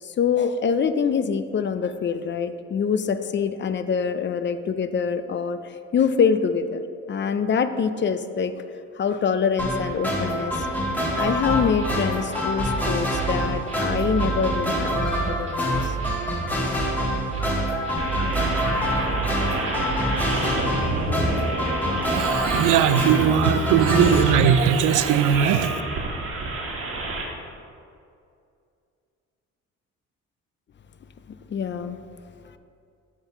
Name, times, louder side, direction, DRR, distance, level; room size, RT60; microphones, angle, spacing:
voice 1, 0.0-5.6 5.9-6.8 7.1-8.5 9.0-10.5 11.1-16.0 17.4-18.8 31.5-32.0, left 6 dB, 40° left, 11 dB, 0.5 m, -25 dB
sound 1, 9.6-24.3, equal, 5° left, 1.6 m, -26 dB
sound 2, 11.2-20.8, right 6 dB, 25° right, 1.7 m, -32 dB
sound 3, 18.0-27.2, right 1 dB, 45° right, 1.4 m, -28 dB
voice 2, 22.1-25.8, right 9 dB, 90° right, 12 dB, 0.5 m, -20 dB
8.0 x 3.7 x 5.9 m, 2.4 s
cardioid pair, 90°, 30 cm